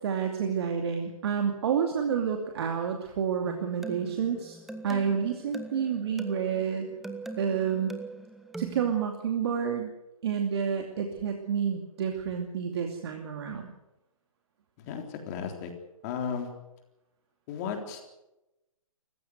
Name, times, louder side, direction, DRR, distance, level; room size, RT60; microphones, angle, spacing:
voice 1, 0.0-4.6 4.8-6.9 7.4-7.9 8.6-9.9 10.2-13.7, right 7 dB, 50° right, 4 dB, 2.6 m, -29 dB
sound 1, 3.4-8.9, right 2 dB, ahead, 1.0 m, -42 dB
voice 2, 14.8-15.7 16.0-16.5 17.5-18.0, left 7 dB, 30° left, 4 dB, 3.6 m, -34 dB
25.0 x 15.0 x 8.1 m, 0.95 s
hypercardioid pair, 150°, 18 cm